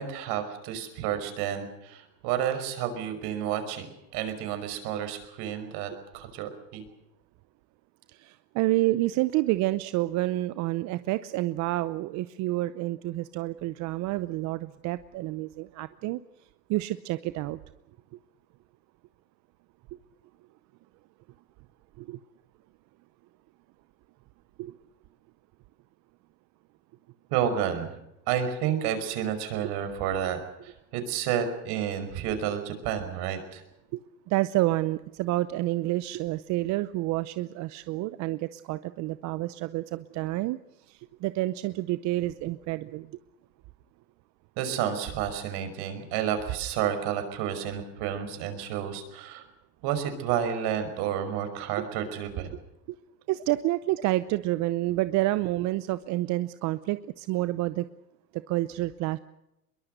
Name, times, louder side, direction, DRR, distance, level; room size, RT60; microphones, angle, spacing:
voice 1, 0.0-3.9 4.1-6.8 27.3-28.0 28.3-33.6 44.6-49.4 49.8-52.5, right 9 dB, 50° right, 8 dB, 5.6 m, -30 dB
voice 2, 8.1-16.2 16.7-17.6 22.0-22.2 24.6-24.8 33.9-34.0 34.3-40.6 40.9-43.1 51.8-51.9 52.9-53.0 53.3-57.8 58.3-59.2, right 17 dB, 35° right, 15 dB, 0.7 m, -29 dB
22.5 x 22.5 x 6.6 m, 0.89 s
hypercardioid pair, 120°, 50 cm